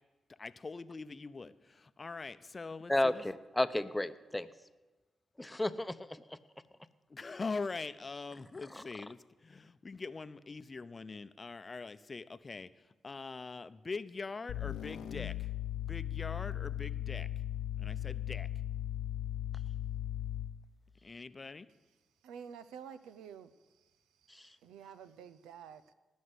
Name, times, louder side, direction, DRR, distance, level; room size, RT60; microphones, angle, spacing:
voice 1, 0.4-3.2 7.1-12.7 13.0-15.5 15.9-17.3 17.8-18.5 21.0-21.7, left 4 dB, 40° left, 13 dB, 0.7 m, -43 dB
voice 2, 2.9-4.5 5.4-6.0 8.7-8.8, left 1 dB, 15° left, 12 dB, 0.8 m, -32 dB
sound 1, 14.5-20.6, left 11 dB, 85° left, 0.6 m, -37 dB
voice 3, 22.2-23.5 24.6-25.9, right 7 dB, 90° right, 13 dB, 0.6 m, -49 dB
18.5 x 6.4 x 8.1 m, 1.2 s
supercardioid pair, 50°, 0 cm